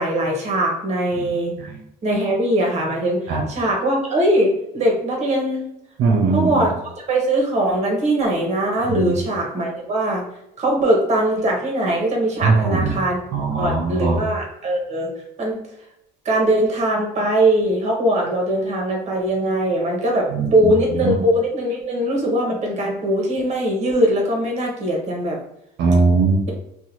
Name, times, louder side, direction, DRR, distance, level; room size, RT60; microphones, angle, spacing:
voice 1, 0.0-1.5 2.0-5.6 6.3-6.8 7.1-10.2 10.6-13.2 13.6-15.1 15.4-15.6 16.2-25.4, right 1 dB, 40° right, 0 dB, 1.0 m, -21 dB
voice 2, 6.0-6.7 8.9-9.1 12.4-13.0 13.3-14.2 20.3-21.1 25.8-26.5, right 4 dB, 75° right, -1 dB, 0.6 m, -20 dB
2.7 x 2.2 x 3.0 m, 0.80 s
cardioid pair, 110°, 17 cm